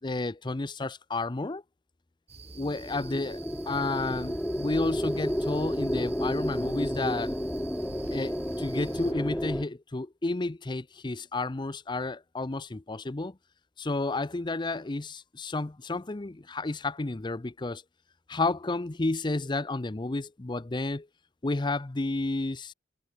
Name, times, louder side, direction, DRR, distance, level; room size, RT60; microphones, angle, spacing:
voice 1, 0.0-1.6 2.5-3.4 3.7-7.3 8.1-13.4 13.8-17.8 18.3-21.1 21.4-22.7, left 2 dB, 25° left, 0.6 m, -31 dB
sound 1, 2.3-9.1, right 3 dB, 35° right, 4.4 m, -48 dB
sound 2, 2.6-9.6, equal, 5° left, 2.1 m, -31 dB
sound 3, 4.0-9.6, left 1 dB, 45° left, 7.3 m, -53 dB
head